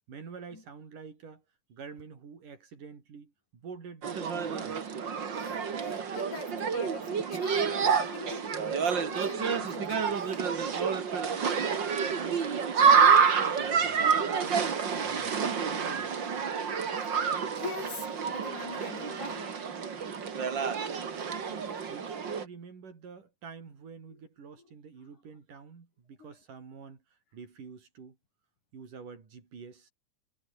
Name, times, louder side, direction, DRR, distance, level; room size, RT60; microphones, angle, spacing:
voice 1, 0.1-1.4 1.7-4.9 12.1-12.5 13.4-16.2 21.1-27.0 27.3-28.2 28.7-29.9, right 5 dB, 70° right, 5.8 m, -47 dB
sound 1, 4.0-22.4, right 6 dB, 40° right, 2.4 m, -28 dB
voice 2, 5.4-10.1 17.0-17.1 17.5-19.5 24.1-24.2 24.6-24.7 26.2-26.3, left 4 dB, 65° left, 6.4 m, -43 dB
omnidirectional pair, 3.9 m